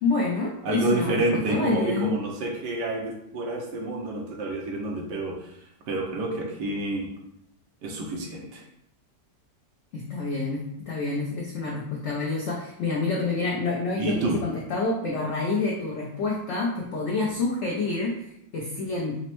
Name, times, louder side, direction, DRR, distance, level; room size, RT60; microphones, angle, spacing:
voice 1, 0.0-2.1 9.9-19.2, left 3 dB, 65° left, -3 dB, 0.7 m, -28 dB
voice 2, 0.6-5.3 5.9-7.1 7.8-8.6 14.0-14.4, right 2 dB, 85° right, 0 dB, 1.4 m, -28 dB
5.1 x 2.0 x 3.0 m, 0.75 s
omnidirectional pair, 1.8 m